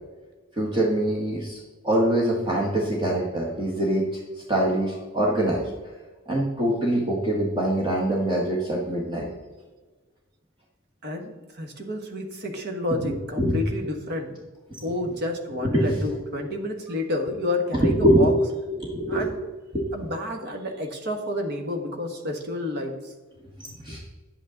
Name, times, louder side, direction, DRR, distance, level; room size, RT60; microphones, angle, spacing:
voice 1, 0.6-1.6 1.8-4.1 4.5-5.7 6.3-9.3 13.0-13.6 14.7-14.8 15.6-16.0 17.8-18.3 18.8-19.4 19.7-19.9 23.8-24.0, right 1 dB, 25° right, -4 dB, 1.5 m, -23 dB
voice 2, 11.0-14.3 14.8-18.3 19.1-19.3 19.9-23.1, left 1 dB, 55° right, 3 dB, 1.5 m, -30 dB
10.0 x 8.5 x 3.9 m, 1.3 s
head